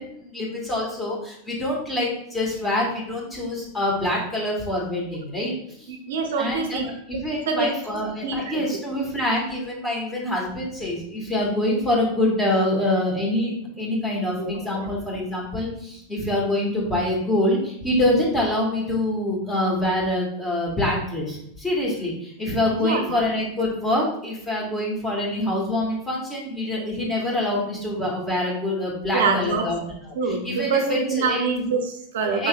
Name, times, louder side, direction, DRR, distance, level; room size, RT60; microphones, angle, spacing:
voice 1, 0.0-5.5 5.8-5.9 6.4-6.8 7.1-29.8 30.3-31.4 32.3-32.5, left 1 dB, 15° left, -3 dB, 1.4 m, -25 dB
voice 2, 5.9-6.9 7.3-7.7 8.2-8.6 14.4-14.9 22.7-23.2 29.1-29.7 30.1-32.5, right 4 dB, 70° right, 5 dB, 0.5 m, -25 dB
4.7 x 3.3 x 2.2 m, 0.73 s
hypercardioid pair, 95°, 0 cm